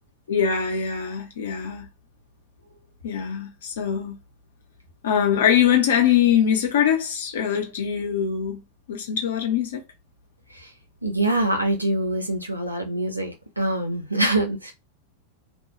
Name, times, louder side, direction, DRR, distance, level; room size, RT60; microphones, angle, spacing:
voice 1, 0.3-1.9 3.0-4.2 5.0-8.6 8.9-9.8, left 9 dB, 60° left, 0.8 m, -22 dB
voice 2, 11.0-14.7, right 1 dB, 85° right, 0.6 m, -24 dB
2.4 x 2.2 x 2.9 m
figure-of-eight pair, 90°, 0 cm